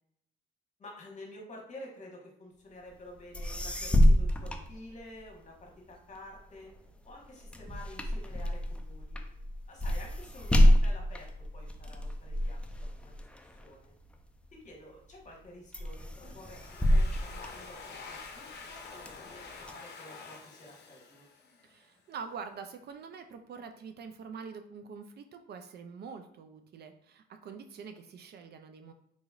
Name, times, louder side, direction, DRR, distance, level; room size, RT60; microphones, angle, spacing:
voice 1, 0.8-6.7 7.0-9.2 9.7-13.3 13.6-13.9 14.5-21.3, left 1 dB, 40° left, -1 dB, 1.2 m, -50 dB
sound 1, 3.1-3.2 3.3-5.4 5.9-14.6 15.1-15.4 15.7-18.2 18.7-19.7, equal, 5° left, 0.4 m, -28 dB
Domestic sounds home sounds, 16.2-21.8, left 4 dB, 60° left, 0.6 m, -48 dB
voice 2, 21.6-28.9, right 5 dB, 55° right, 7 dB, 0.4 m, -45 dB
3.9 x 2.9 x 2.4 m, 0.75 s
cardioid pair, 90°, 20 cm